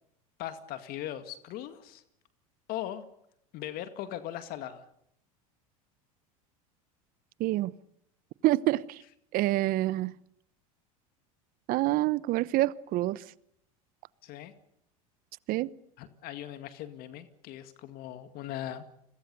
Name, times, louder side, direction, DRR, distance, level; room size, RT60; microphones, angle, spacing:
voice 1, 0.4-2.0 2.7-3.0 3.5-4.9 14.2-14.5 16.0-18.8, left 12 dB, 55° left, 10 dB, 2.1 m, -39 dB
voice 2, 7.4-7.7 8.4-9.0 9.3-10.1 11.7-13.2 15.5-15.7, right 17 dB, 50° right, 20 dB, 1.0 m, -27 dB
29.5 x 22.0 x 6.9 m, 0.75 s
hypercardioid pair, 90°, 18 cm